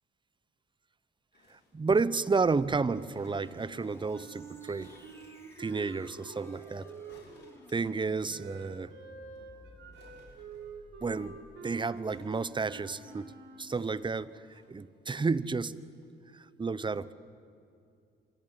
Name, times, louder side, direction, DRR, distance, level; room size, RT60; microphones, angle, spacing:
sound 1, 1.3-2.4 3.1-3.9 4.8-5.9 7.1-8.8 9.1-9.2 9.4-9.5 9.9-11.1 12.0-13.0 13.7-14.7 15.4-15.5, left 3 dB, 60° left, 6.8 m, -62 dB
voice 1, 1.5-4.9 5.6-6.9 7.7-8.9 11.0-11.4 11.6-13.3 13.6-15.8 16.3-17.1, right 4 dB, 25° right, 17 dB, 0.9 m, -31 dB
sound 2, 2.4-11.6, left 1 dB, 15° left, 4.8 m, -56 dB
Wind instrument woodwind instrument, 3.4-7.6 8.3-13.7, right 5 dB, 80° right, 4.1 m, -48 dB
26.0 x 24.5 x 9.0 m, 2.4 s
cardioid pair, 90°, 20 cm